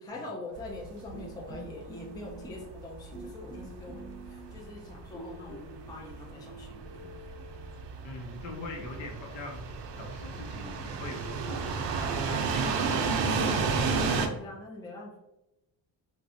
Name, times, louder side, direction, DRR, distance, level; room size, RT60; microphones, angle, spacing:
voice 1, 0.0-7.1 12.8-15.2, left 2 dB, 10° left, -1 dB, 0.3 m, -43 dB
sound 1, 0.6-14.3, right 4 dB, 65° right, 0.5 m, -33 dB
sound 2, 1.1-2.9 3.1-4.7 5.1-7.8, right 2 dB, 35° left, 0.9 m, -46 dB
voice 2, 8.0-13.1 14.0-14.3, left 2 dB, 80° left, 2 dB, 0.8 m, -42 dB
3.1 x 2.2 x 2.7 m, 0.91 s
cardioid pair, 140°, 45 cm